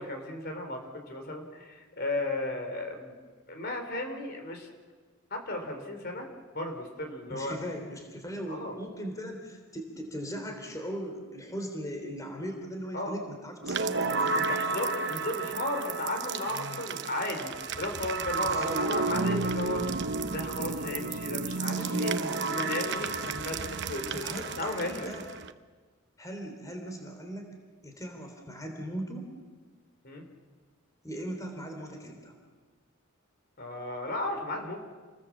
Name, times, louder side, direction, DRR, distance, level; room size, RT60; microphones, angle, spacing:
voice 1, 0.0-3.1 3.5-4.7 5.3-6.3 6.5-7.6 8.5-8.7 12.9-13.2 14.7-19.8 20.3-22.1 22.7-23.1 23.5-23.6 23.9-25.1 30.0-30.2 33.6-34.8, left 2 dB, 45° left, 4 dB, 3.7 m, -35 dB
voice 2, 7.3-14.8 16.5-16.9 18.4-18.9 21.8-23.7 24.1-25.3 26.2-27.5 27.8-29.3 31.0-32.4, equal, 15° left, 4 dB, 3.6 m, -39 dB
sound 1, 13.6-25.5, right 3 dB, 55° right, 0.9 m, -32 dB
28.5 x 21.0 x 7.4 m, 1.4 s
head